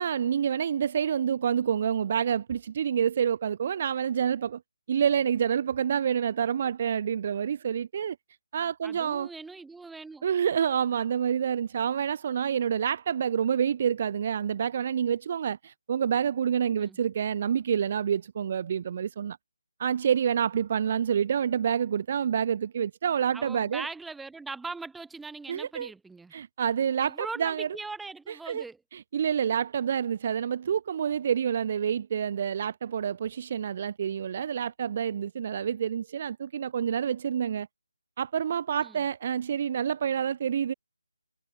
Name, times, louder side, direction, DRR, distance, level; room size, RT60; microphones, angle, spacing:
voice 1, 0.0-4.6 4.9-8.2 8.5-9.3 10.2-19.4 19.8-23.9 25.5-25.9 26.3-27.7 28.3-28.6 28.9-37.7 38.2-40.7, right 8 dB, 40° right, 0.4 m, -28 dB
voice 2, 8.8-10.3 16.8-17.0 23.3-26.3 27.0-28.8 38.8-39.0, right 3 dB, 5° right, 2.8 m, -40 dB
figure-of-eight pair, 150°, 0 cm